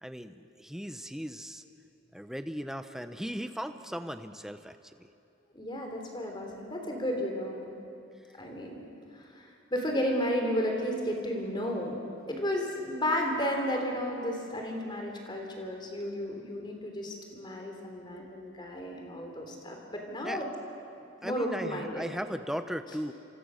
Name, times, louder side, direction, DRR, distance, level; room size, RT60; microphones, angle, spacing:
voice 1, 0.0-1.6 2.1-5.1 20.2-20.4 21.2-23.1, equal, ahead, 9 dB, 0.8 m, -37 dB
voice 2, 5.5-7.7 8.4-8.8 9.1-12.0 12.3-20.5 21.2-22.0, equal, 25° left, 2 dB, 3.5 m, -33 dB
27.5 x 25.5 x 6.5 m, 2.6 s
head